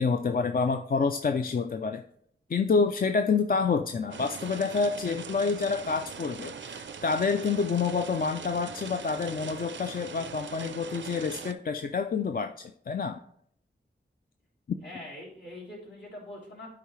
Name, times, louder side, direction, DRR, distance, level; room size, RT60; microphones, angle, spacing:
voice 1, 0.0-2.0 2.5-12.5 12.9-13.2, left 5 dB, 50° left, 7 dB, 0.4 m, -28 dB
sound 1, 4.1-11.5, right 6 dB, 85° right, 0.5 m, -41 dB
voice 2, 14.8-16.7, left 1 dB, 75° left, -6 dB, 3.4 m, -43 dB
11.5 x 4.8 x 3.1 m, 0.67 s
wide cardioid pair, 85°, 19 cm